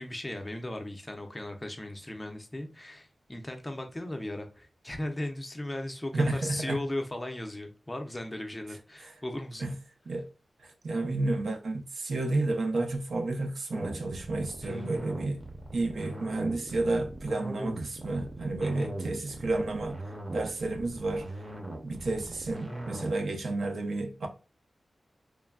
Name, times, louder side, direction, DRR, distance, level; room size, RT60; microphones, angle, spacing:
voice 1, 0.0-9.7 14.6-14.9 18.6-19.0, left 1 dB, 15° left, 0.4 m, -37 dB
voice 2, 6.1-6.8 9.6-9.7 10.1-10.3 10.6-15.4 15.7-20.0 20.3-21.3 21.8-24.3, right 2 dB, 85° right, 0.5 m, -31 dB
sound 1, 13.7-23.2, right 1 dB, 30° right, 0.6 m, -40 dB
3.1 x 2.1 x 2.3 m
wide cardioid pair, 130°, 0 cm